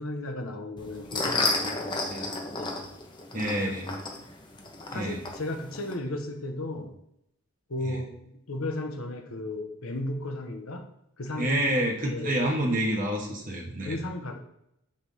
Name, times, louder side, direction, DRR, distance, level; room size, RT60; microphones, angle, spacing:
voice 1, 0.0-2.9 3.3-3.9 4.9-6.9 7.7-10.9 11.2-11.7 12.0-12.5 13.8-14.4, left 1 dB, 75° left, 5 dB, 1.1 m, -35 dB
sound 1, 0.8-5.9, left 2 dB, 20° left, 0.8 m, -32 dB
voice 2, 3.3-4.0 4.9-5.2 11.4-14.0, right 1 dB, 35° right, 0 dB, 1.3 m, -28 dB
8.9 x 3.5 x 5.6 m, 0.79 s
head